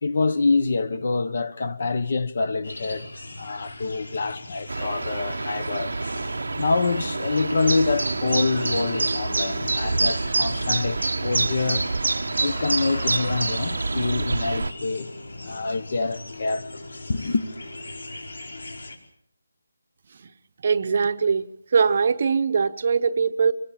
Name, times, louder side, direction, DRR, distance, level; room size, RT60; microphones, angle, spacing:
voice 1, 0.0-5.9 6.6-11.9 12.4-15.1 15.4-16.8 17.1-17.4, left 3 dB, 40° left, 1.3 m, -26 dB
sound 1, 2.6-19.0, left 2 dB, 85° left, 5.3 m, -38 dB
sound 2, 4.7-14.7, right 3 dB, 70° right, 0.9 m, -27 dB
voice 2, 20.6-21.5 21.7-23.5, right 5 dB, 35° right, 1.0 m, -21 dB
25.5 x 22.5 x 7.4 m
figure-of-eight pair, 175°, 0 cm